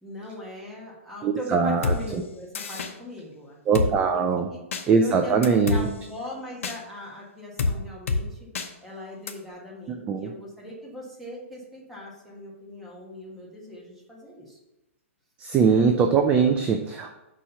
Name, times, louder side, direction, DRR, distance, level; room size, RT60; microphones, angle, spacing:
voice 1, 0.0-3.9 4.5-4.6 5.0-8.4 8.8-14.6 15.6-15.9, left 1 dB, ahead, -5 dB, 1.6 m, -40 dB
voice 2, 1.2-2.2 3.7-4.5 4.9-5.9 9.9-10.3 15.4-17.2, right 5 dB, 15° right, 5 dB, 0.4 m, -22 dB
Drum kit, 1.8-2.0 2.5-2.9 3.7-3.9 4.7-4.8 5.4-5.8 6.6-6.8 7.6-7.7 8.1-8.2 8.5-8.7 9.3-9.4, left 4 dB, 70° left, 0.8 m, -25 dB
6.0 x 4.3 x 5.6 m, 0.93 s
hypercardioid pair, 150°, 7 cm